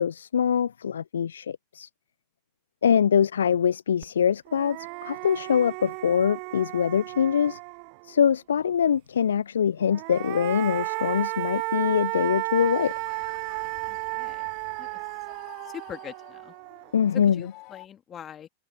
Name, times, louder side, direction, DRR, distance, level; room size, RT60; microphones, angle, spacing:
voice 1, 0.0-1.9 2.8-7.6 8.0-12.9 16.9-17.5, left 8 dB, 65° left, 0.4 m, -24 dB
sound 1, 4.0-4.1 4.5-8.1 9.8-17.1, right 40 dB or more, 45° right, 0.5 m, -33 dB
sound 2, 12.6-17.9, left 25 dB, 40° left, 4.6 m, -52 dB
voice 2, 13.9-14.5 14.8-14.9 15.7-16.5 17.3-18.5, left 9 dB, 25° left, 2.4 m, -42 dB
figure-of-eight pair, 90°, 0 cm